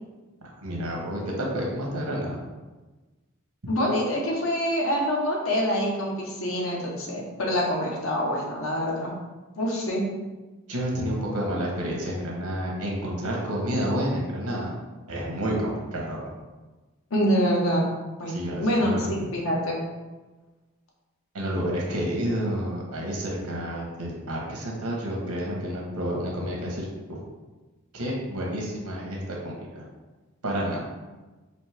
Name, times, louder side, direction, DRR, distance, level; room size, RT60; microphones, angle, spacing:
voice 1, 0.4-2.4 10.7-14.7 15.1-16.3 18.3-19.1 21.3-27.2 27.9-29.9 30.4-30.9, equal, 80° right, -2 dB, 1.1 m, -30 dB
voice 2, 3.7-9.1 9.6-10.0 17.1-17.8 18.2-19.8, equal, 65° left, -2 dB, 0.9 m, -26 dB
4.2 x 2.6 x 3.4 m, 1.2 s
head